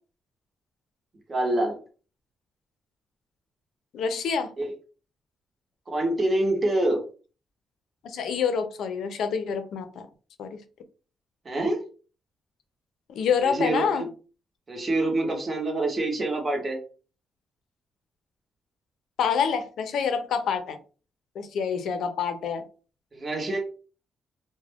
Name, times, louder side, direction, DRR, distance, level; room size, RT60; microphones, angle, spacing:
voice 1, 1.3-1.8 4.6-4.8 5.9-7.0 11.4-11.9 13.4-14.1 14.7-16.8 23.1-23.6, right 2 dB, 25° right, 0.7 m, -26 dB
voice 2, 3.9-4.5 8.0-10.1 10.4-10.6 13.1-14.1 19.2-20.8 21.4-22.6, left 6 dB, 75° left, 0.5 m, -27 dB
2.3 x 2.1 x 3.4 m
cardioid pair, 160°, 0 cm